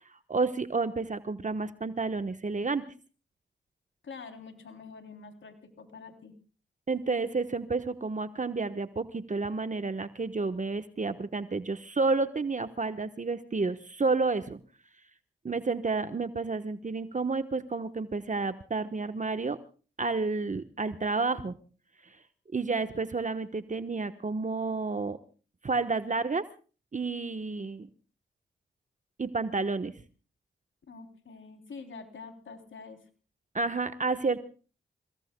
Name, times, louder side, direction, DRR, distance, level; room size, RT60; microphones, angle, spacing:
voice 1, 0.3-2.8 6.9-14.6 15.4-19.6 20.0-21.5 22.0-22.2 22.5-25.2 25.6-26.4 26.9-27.9 29.2-30.0 33.5-34.4, right 3 dB, 40° right, 10 dB, 1.2 m, -30 dB
voice 2, 4.0-6.3 30.9-33.0, left 4 dB, 70° left, 6 dB, 3.4 m, -46 dB
29.0 x 18.0 x 2.3 m, 0.37 s
supercardioid pair, 45°, 21 cm